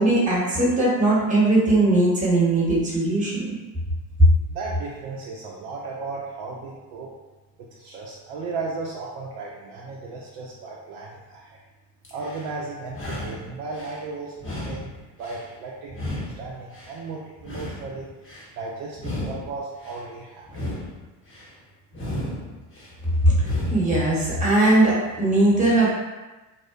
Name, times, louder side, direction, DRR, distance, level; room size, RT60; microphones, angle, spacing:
voice 1, 0.0-3.5 23.2-23.3 23.7-25.9, right 2 dB, 15° right, -5 dB, 1.0 m, -19 dB
voice 2, 4.5-7.1 7.6-11.5 12.1-14.9 15.2-18.1 18.6-20.4, right 3 dB, 55° right, -4 dB, 0.5 m, -35 dB
sound 1, 12.0-12.5 12.9-14.0 14.4-15.5 15.9-17.0 17.4-18.5 18.9-20.0 20.4-21.5 21.9-22.9 23.4-24.0, left 1 dB, 25° left, 0.8 m, -34 dB
2.6 x 2.1 x 2.3 m, 1.2 s
hypercardioid pair, 75°, 50 cm